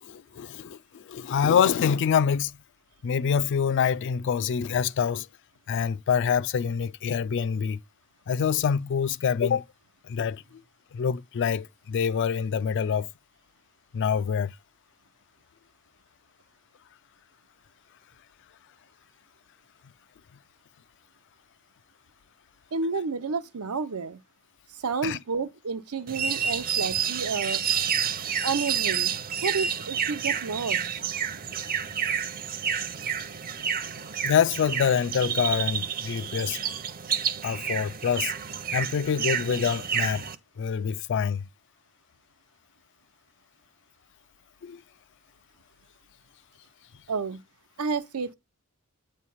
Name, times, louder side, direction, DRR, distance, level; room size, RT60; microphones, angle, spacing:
voice 1, 0.0-2.5 3.0-5.3 5.7-7.8 8.3-9.6 10.0-10.6 10.9-13.1 13.9-14.5 25.0-25.2 34.2-36.6 37.4-38.3 38.7-40.3 40.6-41.5 44.6-44.8, left 7 dB, 55° left, 0.3 m, -26 dB
voice 2, 22.7-24.2 24.7-27.6 28.4-29.1 29.4-30.9 47.1-47.4 47.8-48.3, right 4 dB, 90° right, 0.7 m, -30 dB
sound 1, 26.1-40.3, right 7 dB, 40° right, 0.7 m, -29 dB
8.4 x 3.2 x 5.6 m
head